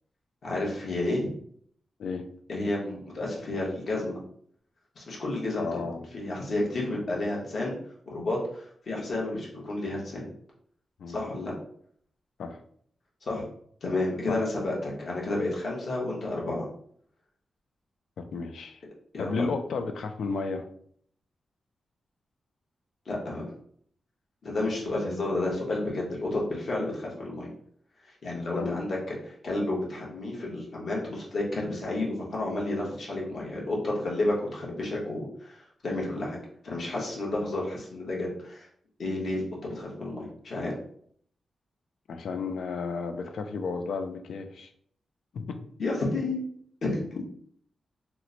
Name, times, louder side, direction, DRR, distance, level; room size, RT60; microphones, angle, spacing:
voice 1, 0.4-1.3 2.5-4.2 5.0-7.7 8.1-10.3 11.1-11.5 13.2-13.4 13.8-16.7 19.1-19.5 23.1-23.4 24.4-27.5 28.2-36.4 36.6-38.7 39.0-40.7 45.8-46.4 46.8-47.2, left 2 dB, 50° left, -3 dB, 1.0 m, -31 dB
voice 2, 5.6-6.1 11.0-11.2 12.4-12.6 14.3-14.4 18.2-18.8 19.2-20.7 28.5-28.8 42.1-44.7 45.3-45.6 47.2-47.3, left 4 dB, 85° left, 7 dB, 0.3 m, -33 dB
2.9 x 2.1 x 3.8 m, 0.63 s
wide cardioid pair, 165°, 0 cm